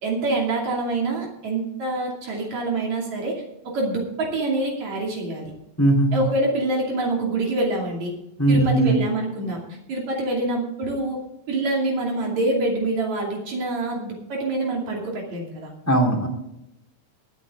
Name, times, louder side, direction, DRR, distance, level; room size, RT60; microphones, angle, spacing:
voice 1, 0.0-5.5 6.1-8.1 8.5-9.6 9.9-11.2 11.5-15.7, right 2 dB, 70° right, -1 dB, 4.1 m, -26 dB
voice 2, 5.8-6.2 8.4-9.0 15.9-16.3, right 2 dB, 5° left, 0 dB, 3.3 m, -18 dB
20.0 x 9.9 x 3.8 m, 0.83 s
omnidirectional pair, 3.3 m